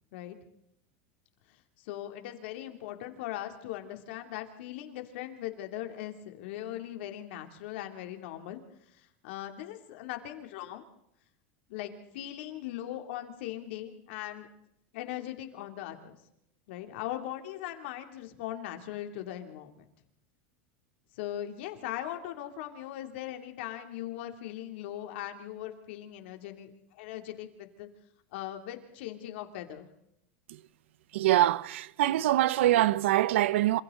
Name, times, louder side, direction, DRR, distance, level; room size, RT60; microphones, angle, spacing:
voice 1, 1.8-8.6 9.0-10.8 11.7-14.5 14.9-16.2 16.7-19.8 21.2-27.9 28.3-29.9, left 12 dB, 70° left, 2.9 m, -39 dB
voice 2, 31.1-33.8, right 14 dB, 85° right, 0.8 m, -24 dB
27.0 x 27.0 x 3.9 m
supercardioid pair, 150°, 6 cm